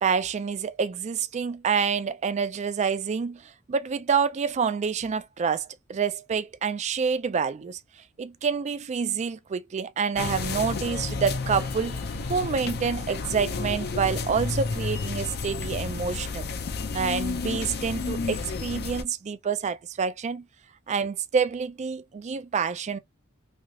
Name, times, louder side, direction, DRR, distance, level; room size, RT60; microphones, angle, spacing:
voice 1, 0.0-7.8 8.2-12.0 12.3-16.5 16.9-20.5 20.9-23.0, right 6 dB, 35° right, 0.3 m, -27 dB
sound 1, 10.2-19.0, left 4 dB, 50° left, 0.5 m, -31 dB
3.2 x 2.7 x 2.3 m
head